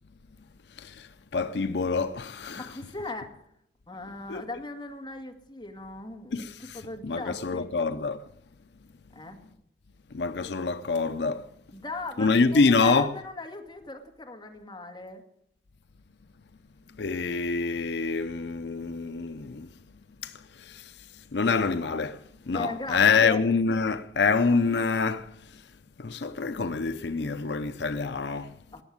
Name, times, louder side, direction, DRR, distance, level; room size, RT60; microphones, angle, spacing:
voice 1, 0.8-2.7 4.3-4.5 6.3-8.2 10.1-11.5 12.2-13.1 17.0-19.7 20.2-20.9 21.3-22.2 22.5-25.3 26.0-28.5, left 4 dB, 75° left, 0.6 m, -26 dB
voice 2, 2.5-3.4 3.9-7.7 9.1-9.4 11.7-15.2 22.5-23.4 28.7-28.8, left 2 dB, 25° left, 2.2 m, -38 dB
19.0 x 7.2 x 9.5 m
head